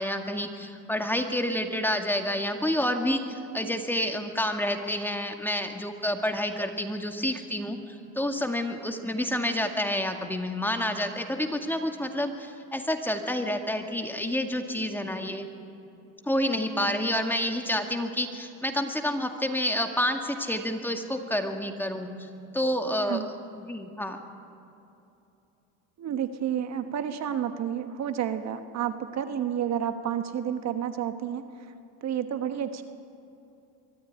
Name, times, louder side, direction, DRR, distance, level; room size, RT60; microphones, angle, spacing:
voice 1, 0.0-15.5 16.3-24.2, left 1 dB, 5° left, 4 dB, 2.1 m, -29 dB
voice 2, 26.0-31.7 32.0-32.8, right 9 dB, 50° right, 8 dB, 1.4 m, -30 dB
23.5 x 14.0 x 9.6 m, 2.8 s
supercardioid pair, 95°, 35 cm